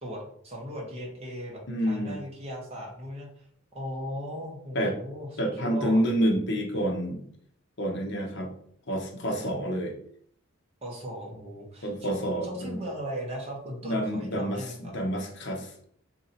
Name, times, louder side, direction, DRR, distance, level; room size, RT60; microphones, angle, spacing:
voice 1, 0.0-3.4 3.7-6.0 10.8-14.9, equal, 30° right, -2 dB, 1.0 m, -38 dB
voice 2, 1.7-2.2 4.7-5.0 5.4-7.2 7.8-8.5 8.9-9.9 11.8-12.8 13.8-15.7, equal, 55° left, 1 dB, 0.8 m, -28 dB
2.9 x 2.7 x 3.9 m, 0.63 s
head